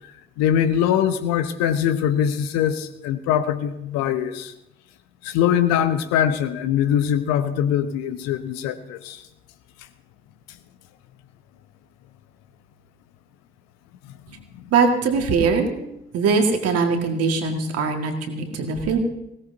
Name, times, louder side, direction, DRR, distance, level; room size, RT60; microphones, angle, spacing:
voice 1, 0.4-4.5 5.2-9.2, left 9 dB, 60° left, 11 dB, 0.9 m, -22 dB
voice 2, 14.7-15.7 16.1-19.0, right 4 dB, 55° right, 4 dB, 1.8 m, -21 dB
20.5 x 17.0 x 2.7 m, 0.85 s
figure-of-eight pair, 45°, 29 cm